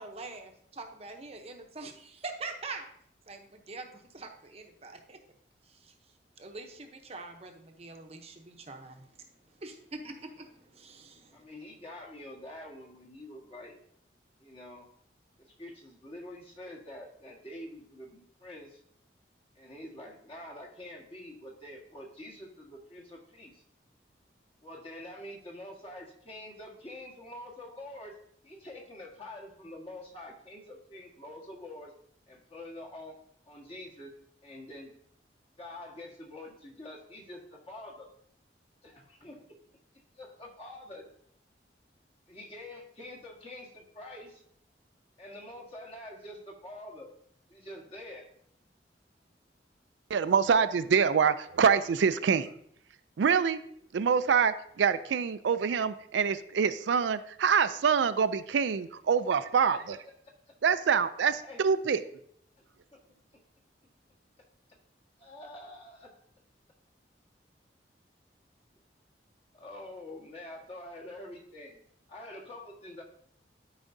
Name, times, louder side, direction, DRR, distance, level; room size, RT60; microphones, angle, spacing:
voice 1, 0.0-2.9 3.3-5.2 5.7-5.9 6.4-9.3 9.6-11.4, right 3 dB, 35° right, 4 dB, 0.8 m, -44 dB
voice 2, 11.3-13.7 14.4-14.9 15.5-18.8 19.5-23.6 24.6-28.2 28.4-31.9 32.3-33.1 33.5-34.1 34.4-34.9 35.6-38.1 38.8-39.4 40.2-41.1 42.3-44.4 45.2-47.1 47.5-48.3 61.4-61.6 62.9-63.0 63.3-63.4 65.2-66.1 69.5-71.8 72.1-73.0, left 1 dB, 30° left, -1 dB, 1.5 m, -46 dB
voice 3, 50.1-52.5 53.2-53.6 53.9-60.0 60.6-62.0, right 6 dB, 85° right, 12 dB, 0.4 m, -25 dB
12.5 x 4.9 x 2.7 m, 0.67 s
head